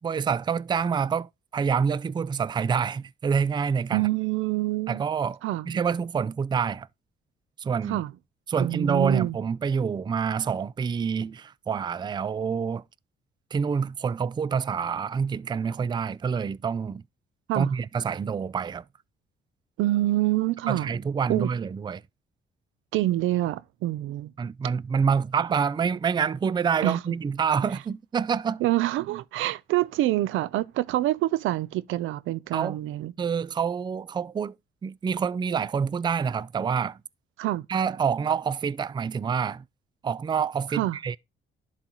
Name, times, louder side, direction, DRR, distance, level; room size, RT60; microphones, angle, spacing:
voice 1, 0.0-4.1 4.9-5.4 5.7-6.9 7.6-8.0 8.5-12.8 13.5-17.0 17.5-18.8 20.7-22.0 24.4-28.6 32.5-32.8 33.2-34.5 34.8-37.0 37.7-39.6 40.0-41.2, right 6 dB, 25° right, 0.3 m, -27 dB
voice 2, 3.9-5.0 5.4-5.7 7.9-8.1 8.6-9.4 17.5-17.7 19.8-20.9 21.3-21.5 22.9-24.3 26.8-27.1 28.6-33.1 37.4-37.7 40.7-41.0, right 16 dB, 90° right, 0.5 m, -26 dB
11.5 x 4.0 x 2.9 m
cardioid pair, 90°, 20 cm